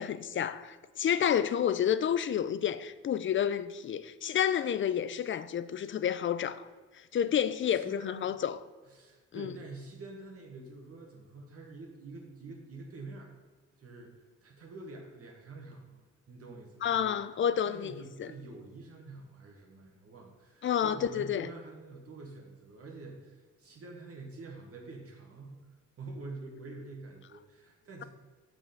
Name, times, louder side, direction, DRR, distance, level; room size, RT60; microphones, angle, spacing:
voice 1, 0.0-6.7 7.1-8.6 9.3-9.5 16.8-17.9 18.2-18.3 20.6-21.5, left 9 dB, 40° left, 0.4 m, -30 dB
voice 2, 7.7-8.4 8.8-13.4 13.8-17.2 17.7-25.6 26.0-28.0, right 3 dB, 50° right, 1.4 m, -47 dB
6.0 x 5.4 x 5.8 m
cardioid pair, 90°, 30 cm